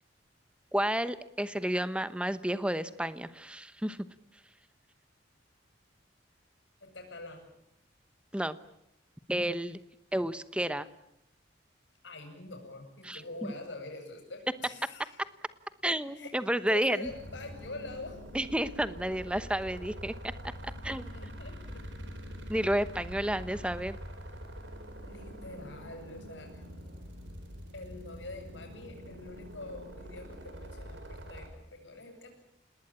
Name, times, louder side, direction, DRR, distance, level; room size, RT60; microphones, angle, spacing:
voice 1, 0.7-4.0 8.3-8.6 9.3-9.8 10.1-10.9 13.0-13.2 15.2-15.3 15.8-17.1 18.3-20.1 20.8-21.1 22.5-24.0, right 1 dB, 5° right, 13 dB, 1.0 m, -31 dB
voice 2, 6.8-7.5 12.0-15.2 16.2-18.5 20.7-22.4 25.0-26.7 27.7-32.3, left 2 dB, 70° left, 4 dB, 8.0 m, -45 dB
sound 1, 17.0-31.5, equal, 70° right, 4.8 m, -45 dB
28.0 x 19.5 x 8.9 m, 0.82 s
head